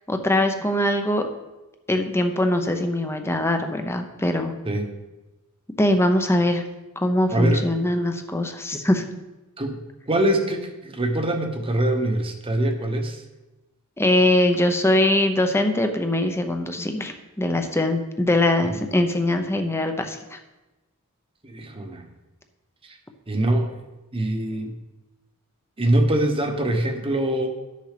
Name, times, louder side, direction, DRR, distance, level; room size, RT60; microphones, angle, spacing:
voice 1, 0.1-1.3 1.9-4.5 5.8-6.6 7.0-9.0 14.0-20.4, left 1 dB, 10° left, 6 dB, 0.8 m, -22 dB
voice 2, 7.3-7.7 9.6-9.8 10.1-13.2 18.6-18.7 21.4-22.1 22.8-23.0 23.3-23.8 24.1-24.7 25.8-27.5, right 1 dB, 25° right, 5 dB, 1.1 m, -23 dB
11.5 x 6.6 x 5.1 m, 1.1 s
head